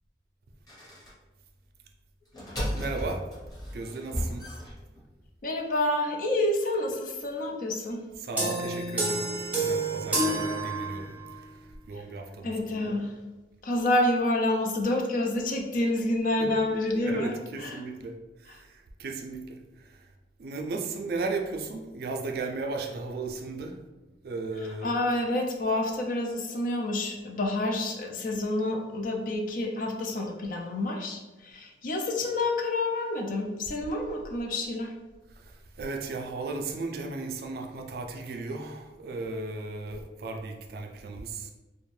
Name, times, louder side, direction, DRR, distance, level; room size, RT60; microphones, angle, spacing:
sound 1, 0.7-1.1 2.2-5.3, equal, 20° left, 0.8 m, -35 dB
voice 1, 2.7-3.2 3.7-4.4 8.2-11.1 11.9-13.0 16.4-18.1 18.4-20.1 20.4-23.8 24.2-24.9 35.3-41.5, right 3 dB, 55° right, 3 dB, 0.3 m, -36 dB
voice 2, 5.4-8.0 12.0-12.1 12.4-13.1 13.6-17.9 24.8-34.9, left 1 dB, 50° left, 2 dB, 0.4 m, -28 dB
sound 2, 8.4-11.4, right 2 dB, 10° right, 0.5 m, -29 dB
2.5 x 2.1 x 3.1 m, 1.1 s
head